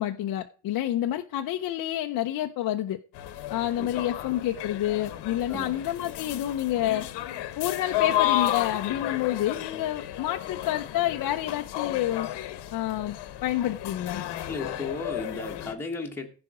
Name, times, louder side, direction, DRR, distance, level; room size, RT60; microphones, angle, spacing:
voice 1, 0.0-3.0 3.5-7.1 7.6-12.3 12.7-14.2, left 13 dB, 50° left, 0.7 m, -28 dB
sound 1, 3.1-15.7, left 13 dB, 65° left, 1.1 m, -33 dB
voice 2, 5.5-5.8 14.5-16.3, left 3 dB, 5° left, 1.3 m, -35 dB
15.5 x 5.2 x 4.9 m
cardioid pair, 170°, 44 cm